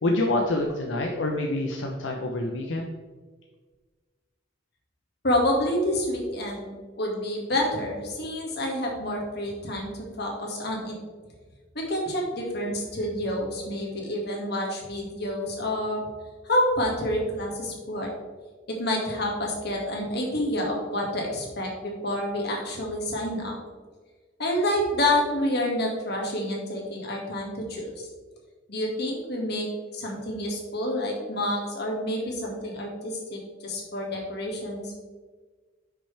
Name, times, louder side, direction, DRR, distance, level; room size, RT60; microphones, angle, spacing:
voice 1, 0.0-2.9, left 2 dB, 85° left, 1 dB, 0.8 m, -26 dB
voice 2, 5.2-9.9 10.2-11.0 11.7-16.0 16.4-18.1 18.7-23.6 24.4-27.9 28.7-29.7 29.9-34.9, left 1 dB, 60° left, -1 dB, 2.1 m, -28 dB
10.0 x 6.1 x 3.4 m, 1.4 s
head